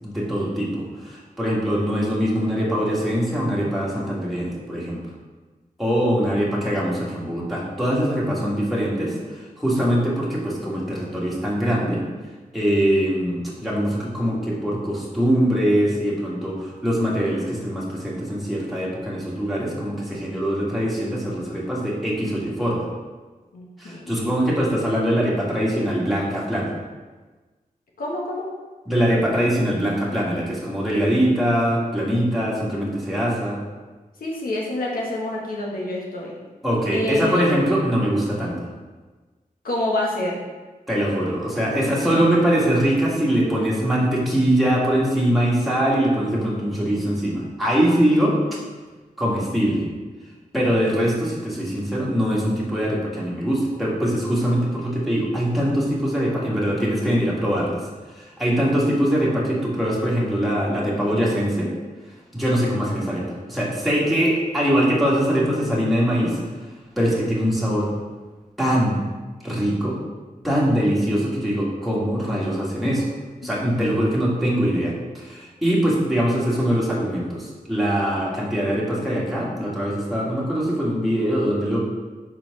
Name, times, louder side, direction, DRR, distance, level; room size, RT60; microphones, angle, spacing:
voice 1, 0.0-5.0 5.8-12.0 12.5-22.9 23.8-26.7 28.9-33.6 36.6-38.7 40.9-48.4 49.2-49.9 50.5-57.8 58.1-61.7 62.3-66.4 67.0-67.9 68.6-69.0 69.4-70.0 70.4-73.1 73.4-81.8, equal, ahead, -6 dB, 1.9 m, -22 dB
voice 2, 23.5-24.3 28.0-28.5 34.2-36.4 36.9-37.4 39.6-40.4 41.7-42.2 73.6-73.9, left 1 dB, 75° left, -2 dB, 1.4 m, -27 dB
4.4 x 4.3 x 5.4 m, 1.3 s
wide cardioid pair, 85°, 15 cm